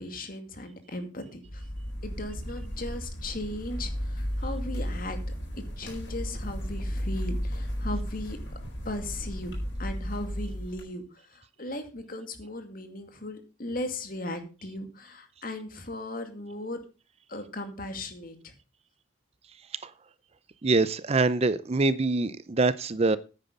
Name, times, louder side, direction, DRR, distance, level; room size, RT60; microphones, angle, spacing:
voice 1, 0.0-1.6 2.0-5.2 5.8-8.4 8.8-9.5 9.8-11.0 11.3-16.8 17.3-18.5, left 1 dB, 45° left, 2.3 m, -37 dB
sound 1, 1.4-10.8, equal, 65° left, 4.9 m, -34 dB
voice 2, 20.6-23.2, right 3 dB, 30° right, 0.5 m, -24 dB
9.9 x 8.9 x 5.4 m
head